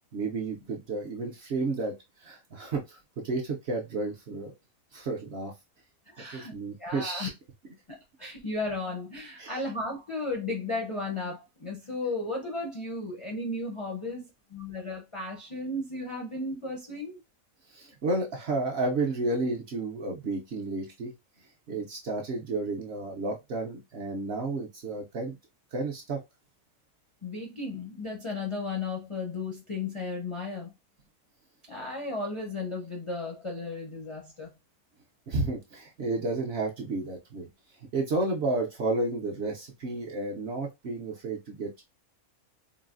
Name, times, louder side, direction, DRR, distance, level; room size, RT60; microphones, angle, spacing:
voice 1, 0.1-1.9 2.2-4.5 4.9-5.5 6.3-7.3 9.4-9.5 17.7-21.1 21.7-25.3 25.7-26.2 35.3-37.5 37.9-41.8, right 3 dB, 60° right, 0.7 m, -31 dB
voice 2, 6.1-7.3 7.9-17.2 27.2-30.7 31.7-34.5, left 2 dB, 50° left, 0.4 m, -35 dB
3.8 x 2.0 x 2.4 m
omnidirectional pair, 1.5 m